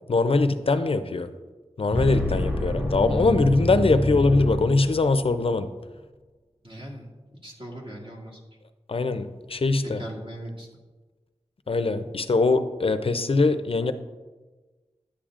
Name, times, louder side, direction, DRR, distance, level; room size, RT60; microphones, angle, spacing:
voice 1, 0.1-1.3 1.8-5.7 8.9-10.0 11.7-13.9, left 3 dB, 55° left, 10 dB, 0.5 m, -22 dB
sound 1, 1.9-5.4, left 1 dB, 15° right, 1.7 m, -27 dB
voice 2, 6.6-7.1 7.4-8.4 9.8-10.7, right 1 dB, 50° right, -3 dB, 2.0 m, -39 dB
10.0 x 8.6 x 2.5 m, 1.3 s
wide cardioid pair, 75°, 12 cm